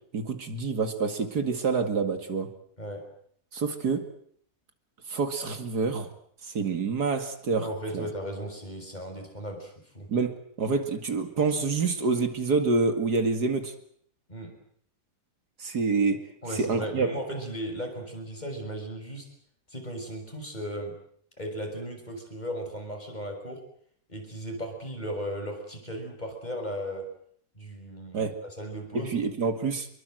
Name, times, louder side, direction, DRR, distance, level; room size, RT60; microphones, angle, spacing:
voice 1, 0.1-2.5 3.5-4.1 5.1-6.1 6.5-7.7 7.9-8.1 10.1-13.7 15.6-16.2 16.5-17.1 28.1-28.4 28.9-29.9, right 4 dB, 70° right, 7 dB, 2.7 m, -27 dB
voice 2, 2.8-3.1 7.6-10.1 14.3-14.6 16.4-19.3 19.7-21.0 21.4-23.6 24.1-27.1 27.5-29.2, right 1 dB, 25° left, 3 dB, 6.6 m, -36 dB
26.5 x 23.0 x 7.8 m, 0.63 s
omnidirectional pair, 1.8 m